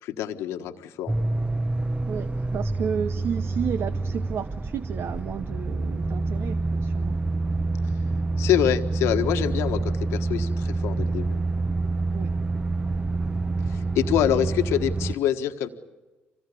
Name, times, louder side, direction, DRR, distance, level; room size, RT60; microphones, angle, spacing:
voice 1, 0.0-1.2 8.4-11.4 13.7-15.7, left 11 dB, 80° left, 8 dB, 1.5 m, -25 dB
sound 1, 1.1-15.1, right 3 dB, 20° right, 0.8 m, -27 dB
voice 2, 2.1-7.2 12.1-12.4, right 7 dB, 65° right, 13 dB, 0.9 m, -32 dB
26.0 x 19.0 x 8.5 m, 1.2 s
supercardioid pair, 65°, 5 cm